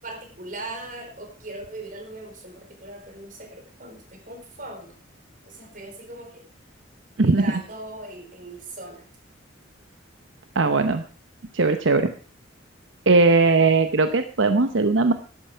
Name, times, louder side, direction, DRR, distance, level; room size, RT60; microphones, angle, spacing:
voice 1, 0.0-4.9 5.4-6.5 7.2-9.1, right 2 dB, 45° right, 4 dB, 3.9 m, -39 dB
voice 2, 10.5-11.0 11.5-12.1 13.1-15.1, right 3 dB, 75° right, 8 dB, 0.8 m, -19 dB
12.5 x 11.5 x 4.6 m, 0.41 s
head